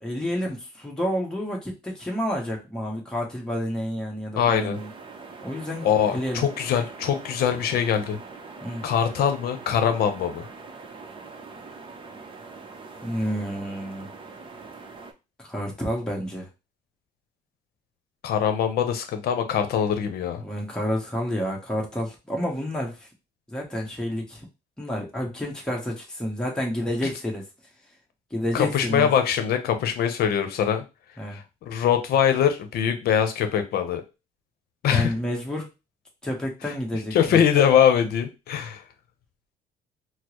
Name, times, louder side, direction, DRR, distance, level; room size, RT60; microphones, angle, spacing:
voice 1, 0.0-4.9 5.4-6.4 8.6-8.8 13.0-14.1 15.4-16.5 20.4-23.1 23.5-24.4 24.8-27.4 28.3-29.1 31.2-31.4 34.9-35.7 36.2-37.4, equal, 5° left, -2 dB, 1.0 m, -29 dB
voice 2, 4.4-4.8 5.8-8.2 8.8-10.5 18.2-20.4 27.0-27.1 28.5-30.8 31.3-34.0 34.8-35.1 36.6-36.7 37.1-38.8, left 8 dB, 65° left, 8 dB, 0.7 m, -23 dB
sound 1, 4.7-15.1, right 4 dB, 30° right, 0.6 m, -43 dB
4.3 x 2.0 x 3.0 m, 0.27 s
cardioid pair, 110°, 17 cm